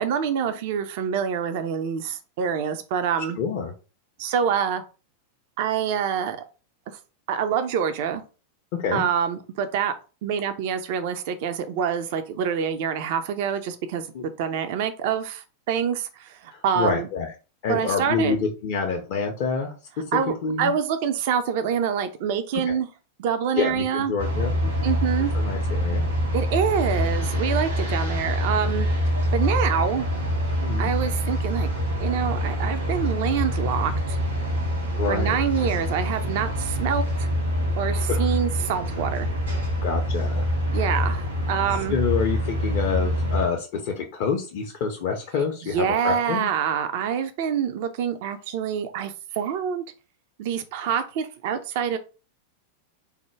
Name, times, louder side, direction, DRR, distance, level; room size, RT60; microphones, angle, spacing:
voice 1, 0.0-3.4 4.2-4.8 5.6-6.4 6.9-7.0 7.3-8.2 8.9-9.9 10.2-17.1 17.7-18.4 20.1-22.9 23.2-24.1 24.8-25.3 26.3-28.9 29.3-30.1 30.8-31.7 32.0-34.2 35.1-37.3 37.8-39.3 40.7-42.0 45.6-49.8 50.4-52.0, right 8 dB, 50° right, 9 dB, 0.4 m, -26 dB
voice 2, 3.4-3.7 8.8-9.1 14.1-14.2 16.5-17.3 17.6-20.7 22.7-22.8 23.5-24.9 25.3-26.1 30.6-30.9 35.0-35.4 38.1-38.2 39.8-40.5 41.9-46.5, left 5 dB, 45° left, 1 dB, 0.5 m, -27 dB
sound 1, 24.2-43.4, equal, 70° right, 1.4 m, -25 dB
3.4 x 2.1 x 3.1 m, 0.34 s
figure-of-eight pair, 90°, 0 cm